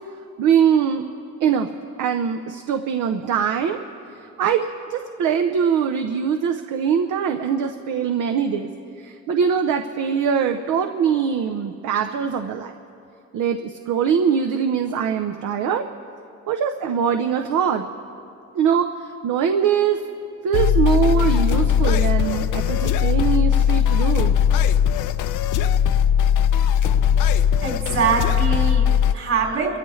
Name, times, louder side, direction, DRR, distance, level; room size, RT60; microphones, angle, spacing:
voice 1, 0.4-1.0 1.4-1.7 2.0-3.8 4.4-8.7 9.0-12.7 13.3-15.8 16.5-17.9 18.5-18.9 19.2-20.0 20.4-24.4, right 7 dB, 80° right, 5 dB, 0.8 m, -22 dB
sound 1, 20.5-29.1, left 9 dB, 85° left, 0.6 m, -19 dB
voice 2, 27.6-29.8, right 6 dB, 60° right, -4 dB, 4.5 m, -23 dB
30.0 x 14.0 x 3.2 m, 2.6 s
cardioid pair, 90°, 30 cm